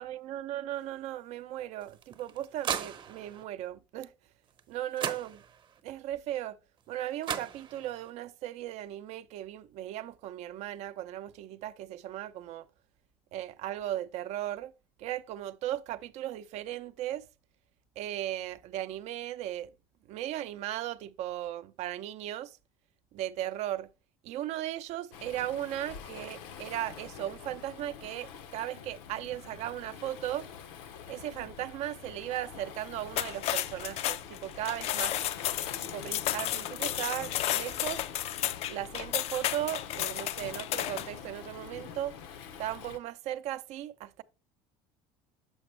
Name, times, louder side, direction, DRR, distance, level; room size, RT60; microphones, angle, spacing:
voice 1, 0.0-4.1 4.7-5.4 5.8-6.6 6.9-12.7 13.3-14.7 15.0-17.3 18.0-19.7 20.1-22.6 23.1-23.9 24.2-30.5 31.1-35.2 35.8-38.0 38.7-42.1 42.6-44.2, right 13 dB, 60° right, 0.5 m, -37 dB
sound 1, 1.8-3.4 4.6-4.7 5.0-5.8 6.9-7.0 7.2-8.1, right 7 dB, 40° right, 0.9 m, -37 dB
Waves surf, 25.1-43.0, left 7 dB, 85° left, 0.7 m, -46 dB
sound 2, 33.1-41.2, left 13 dB, 55° left, 0.4 m, -32 dB
7.0 x 5.1 x 3.2 m
supercardioid pair, 110°, 13 cm